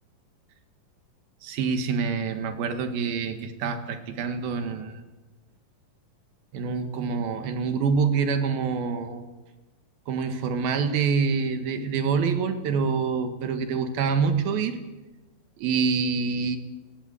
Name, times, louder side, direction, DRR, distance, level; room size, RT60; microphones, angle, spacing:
voice 1, 1.4-5.0 6.5-9.3 10.1-14.8 15.6-16.6, right 5 dB, 80° right, 7 dB, 3.5 m, -26 dB
30.0 x 12.5 x 8.3 m, 1.2 s
omnidirectional pair, 4.2 m